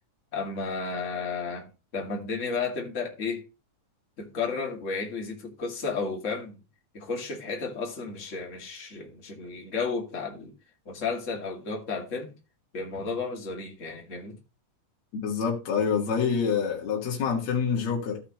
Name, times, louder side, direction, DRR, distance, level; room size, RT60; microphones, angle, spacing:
voice 1, 0.3-1.7 1.9-3.4 4.2-6.6 6.9-10.5 10.9-12.3 12.7-14.4, left 4 dB, 25° left, 2.4 m, -33 dB
voice 2, 15.2-18.2, left 6 dB, 60° left, 3.1 m, -26 dB
15.0 x 5.7 x 3.0 m
omnidirectional pair, 3.6 m